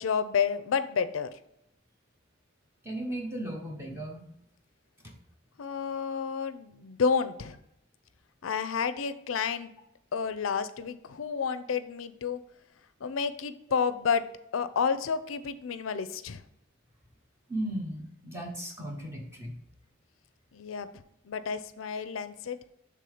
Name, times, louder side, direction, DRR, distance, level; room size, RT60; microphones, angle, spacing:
voice 1, 0.0-1.3 5.6-7.6 8.4-9.7 10.1-12.4 13.0-14.2 14.5-16.4 20.5-20.9 21.2-22.6, left 6 dB, 90° left, 12 dB, 0.5 m, -30 dB
voice 2, 2.8-4.2 5.0-5.1 17.5-19.5, right 1 dB, 15° right, 0 dB, 0.9 m, -36 dB
6.9 x 3.5 x 4.9 m, 0.77 s
head